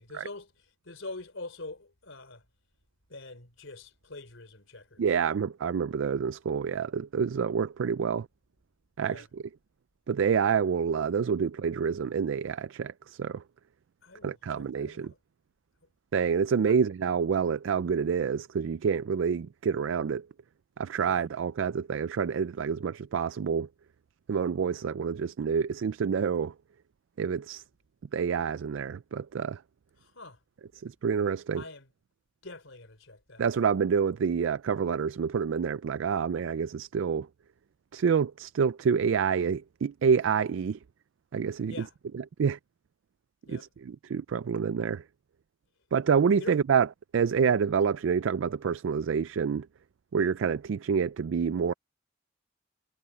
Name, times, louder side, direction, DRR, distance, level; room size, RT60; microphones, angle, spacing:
voice 1, 0.0-2.4 3.1-5.0 9.0-9.3 14.0-15.2 16.7-16.8 21.0-21.3 30.0-30.4 31.6-31.9 32.4-33.7 41.7-41.9 43.4-43.7 46.4-46.6, left 2 dB, 75° left, 3.6 m, -45 dB
voice 2, 5.0-8.3 9.0-9.4 10.1-13.4 14.2-15.1 16.1-20.3 20.8-23.7 24.3-26.5 27.2-27.6 28.1-29.6 30.8-31.6 33.4-37.3 37.9-40.8 41.3-41.8 42.1-42.6 43.5-45.0 45.9-46.9 47.1-49.7 50.1-51.7, right 6 dB, 70° right, 0.4 m, -27 dB
head